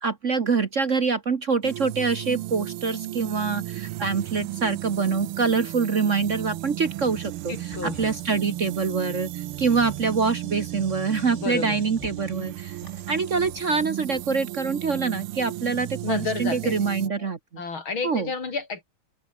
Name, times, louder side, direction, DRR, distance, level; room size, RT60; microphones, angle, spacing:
voice 1, 0.0-12.8 13.1-17.4 18.0-18.3, right 5 dB, 40° right, 1.4 m, -25 dB
sound 1, 1.6-17.1, right 15 dB, 90° right, 1.6 m, -35 dB
voice 2, 7.5-8.1 11.3-11.8 16.0-16.7 17.2-17.3 17.6-18.8, left 4 dB, 70° left, 4.5 m, -31 dB
sound 2, 7.6-8.4 8.6-9.0 9.4-10.4 11.0-14.4, left 2 dB, 30° left, 5.6 m, -48 dB
open air
omnidirectional pair, 2.3 m